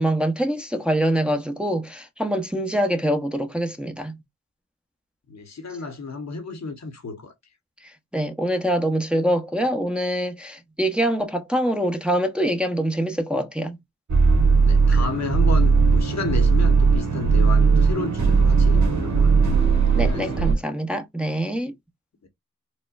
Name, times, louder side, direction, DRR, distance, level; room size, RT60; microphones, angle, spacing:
voice 1, 0.0-4.1 7.8-13.8 19.9-21.7, right 1 dB, 5° right, 0.8 m, -24 dB
voice 2, 5.3-7.3 14.6-19.5 19.9-20.6 22.2-22.3, left 4 dB, 65° left, 1.1 m, -32 dB
sound 1, 14.1-20.5, right 5 dB, 70° right, 1.3 m, -18 dB
4.2 x 2.2 x 2.4 m
cardioid pair, 45°, 30 cm